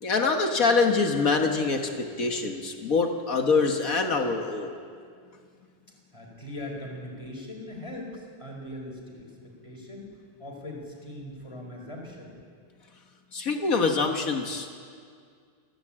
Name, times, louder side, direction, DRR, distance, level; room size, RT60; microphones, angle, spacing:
voice 1, 0.0-4.7 13.3-14.7, left 4 dB, 65° left, 4 dB, 0.8 m, -25 dB
voice 2, 6.1-10.1 10.4-12.3, left 1 dB, 10° left, -1 dB, 4.2 m, -40 dB
29.0 x 11.0 x 8.7 m, 2.2 s
omnidirectional pair, 3.4 m